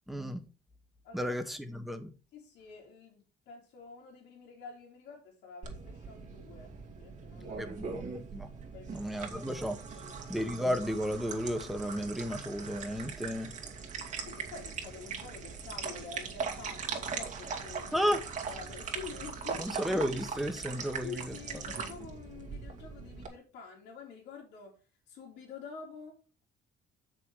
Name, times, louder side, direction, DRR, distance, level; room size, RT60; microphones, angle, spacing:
voice 1, 0.1-0.4 1.1-2.1 7.6-8.5 8.9-9.8 10.3-13.5 17.9-18.2 19.6-21.3, equal, ahead, 1.5 m, -33 dB
voice 2, 1.0-1.4 2.3-8.2 8.7-9.5 9.9-10.2 14.2-18.1 18.5-19.8 21.0-24.8 25.1-26.4, left 5 dB, 80° left, 3.2 m, -48 dB
sound 1, 5.6-23.3, right 5 dB, 45° right, 2.4 m, -40 dB
7.7 x 6.3 x 4.8 m
cardioid pair, 110°, 17 cm